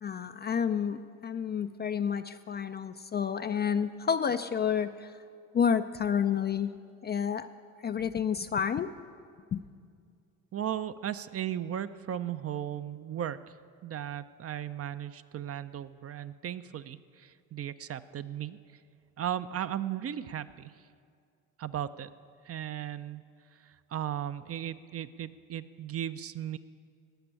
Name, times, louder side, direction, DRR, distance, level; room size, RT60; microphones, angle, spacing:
voice 1, 0.0-5.1 5.5-6.7 7.0-7.5 7.8-8.9 9.5-9.6, left 7 dB, 25° left, 9 dB, 0.4 m, -30 dB
voice 2, 10.5-13.5 13.8-18.6 19.2-20.8 21.6-22.1 22.4-23.2 23.6-26.6, right 10 dB, 35° right, 13 dB, 0.5 m, -36 dB
17.0 x 6.0 x 8.8 m, 2.2 s
hypercardioid pair, 65°, 44 cm